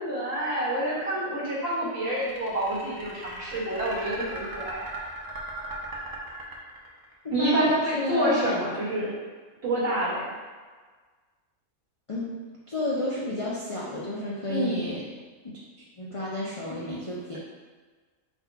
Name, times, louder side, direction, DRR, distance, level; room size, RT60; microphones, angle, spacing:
voice 1, 0.0-4.8 7.3-9.2 9.6-10.3 14.5-14.8, right 1 dB, 50° right, -8 dB, 1.6 m, -28 dB
sound 1, 2.1-7.1, right 2 dB, 30° right, 0.4 m, -38 dB
voice 2, 7.2-8.6 12.1-12.3 12.7-15.1 15.4-15.6 16.0-17.4, left 1 dB, 50° left, -6 dB, 0.4 m, -31 dB
4.2 x 2.2 x 4.5 m, 1.4 s
omnidirectional pair, 1.4 m